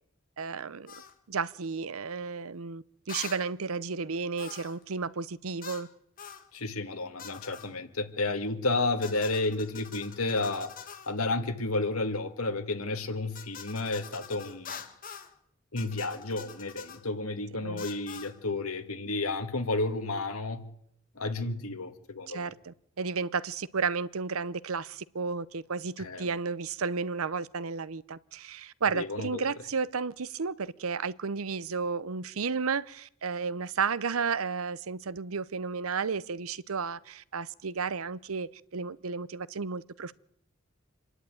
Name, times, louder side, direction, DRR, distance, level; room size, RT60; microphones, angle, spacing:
voice 1, 0.4-0.9 1.3-5.9 17.6-17.8 22.3-40.1, right 5 dB, 80° right, 0.7 m, -33 dB
sound 1, 0.9-1.1 3.1-3.4 4.4-4.8 5.6-5.9 6.2-6.5 7.2-7.7 9.0-11.1 13.3-15.3 15.8-17.0 17.8-18.3, left 7 dB, 40° left, 1.7 m, -45 dB
voice 2, 6.5-10.7 11.1-14.8 15.7-20.6 21.2-22.5 26.0-26.3 28.9-29.5, left 2 dB, 90° left, 2.1 m, -31 dB
26.5 x 11.0 x 9.3 m
head